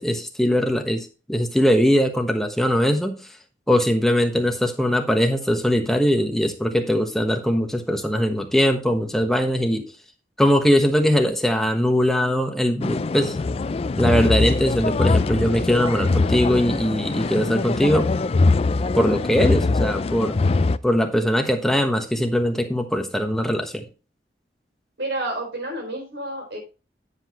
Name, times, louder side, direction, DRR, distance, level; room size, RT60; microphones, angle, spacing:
voice 1, 0.0-3.2 3.7-9.9 10.4-13.4 14.0-18.1 18.9-20.4 20.8-23.8, equal, ahead, 1.2 m, -21 dB
sound 1, 12.8-20.8, left 3 dB, 35° left, 0.3 m, -22 dB
voice 2, 25.0-26.6, right 1 dB, 75° right, 4.5 m, -29 dB
9.8 x 7.9 x 3.0 m
head